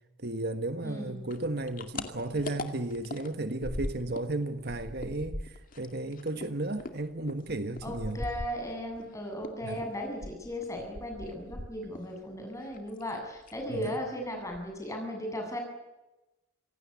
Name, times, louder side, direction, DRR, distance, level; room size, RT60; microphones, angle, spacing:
voice 1, 0.2-8.2 9.6-9.8 13.7-14.0, right 2 dB, 55° right, 1.5 m, -34 dB
voice 2, 0.8-1.2 7.8-15.6, equal, 15° left, 7.8 m, -36 dB
sound 1, 1.3-4.3 4.6-9.1 9.4-12.2 12.4-13.1 13.4-13.7 14.0-14.1 14.4-14.9, left 1 dB, 45° left, 2.3 m, -40 dB
26.5 x 17.5 x 8.4 m
head